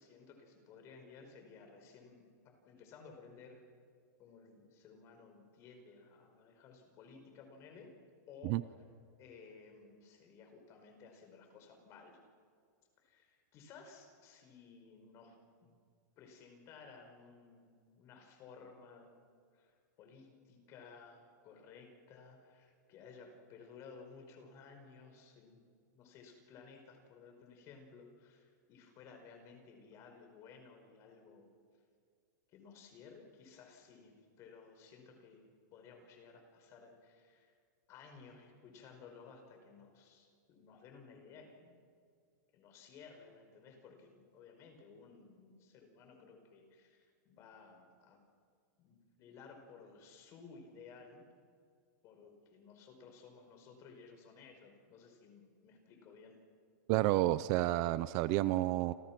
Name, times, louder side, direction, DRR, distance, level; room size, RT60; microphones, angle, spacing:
voice 1, 0.0-3.7 4.2-7.9 8.3-8.7 9.2-12.2 13.0-15.8 16.2-19.3 19.5-31.5 32.5-37.5 37.9-41.8 42.5-48.2 48.8-51.2 52.0-56.4, left 5 dB, 30° left, 5 dB, 5.1 m, -57 dB
voice 2, 56.9-58.9, right 16 dB, 35° right, 15 dB, 0.6 m, -30 dB
29.0 x 27.5 x 6.1 m, 2.1 s
supercardioid pair, 165°, 10 cm